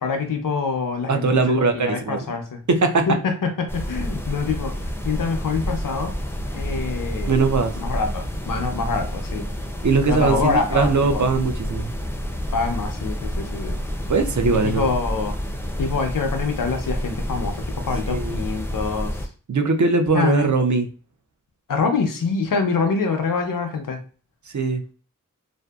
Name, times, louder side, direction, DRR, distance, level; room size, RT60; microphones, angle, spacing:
voice 1, 0.0-2.6 3.1-6.1 6.5-7.3 7.8-9.5 10.1-11.3 12.5-13.8 14.6-15.4 15.8-19.2 20.1-20.5 21.7-24.0, left 4 dB, 80° left, 5 dB, 0.6 m, -25 dB
voice 2, 1.1-2.4 2.7-3.1 7.3-7.8 9.8-11.9 14.1-14.9 18.1-18.4 19.5-20.9 24.5-24.8, right 4 dB, 60° right, 6 dB, 0.5 m, -20 dB
sound 1, 3.7-19.3, equal, 5° left, 0.4 m, -29 dB
2.6 x 2.4 x 2.3 m, 0.39 s
wide cardioid pair, 55°, 33 cm